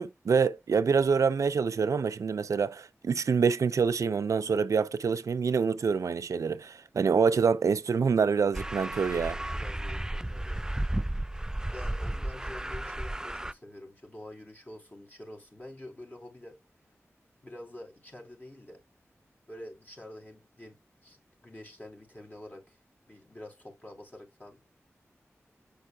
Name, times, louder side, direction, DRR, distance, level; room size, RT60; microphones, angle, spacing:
voice 1, 0.0-9.4, right 5 dB, 85° right, 0.4 m, -26 dB
sound 1, 8.5-13.5, right 1 dB, 10° right, 0.3 m, -33 dB
voice 2, 9.1-10.7 11.7-16.6 17.4-18.8 19.5-22.8 23.1-24.6, left 1 dB, 35° left, 3.8 m, -47 dB
7.7 x 5.5 x 2.3 m
wide cardioid pair, 55°, 5 cm